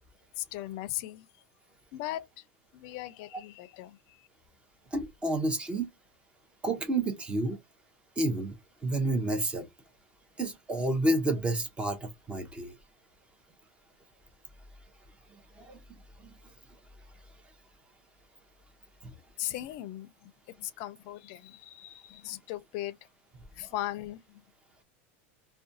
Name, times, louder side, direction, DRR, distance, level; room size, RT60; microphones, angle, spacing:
voice 1, 0.4-1.3 1.9-2.4 2.7-4.3 19.4-20.3 20.6-23.0 23.6-24.4, left 14 dB, 55° left, 0.5 m, -38 dB
voice 2, 4.9-5.9 6.6-7.6 8.2-8.5 8.8-9.7 10.4-12.7 15.6-15.8 16.2-16.3, right 2 dB, 15° right, 0.7 m, -30 dB
2.4 x 2.2 x 2.7 m
supercardioid pair, 140°, 7 cm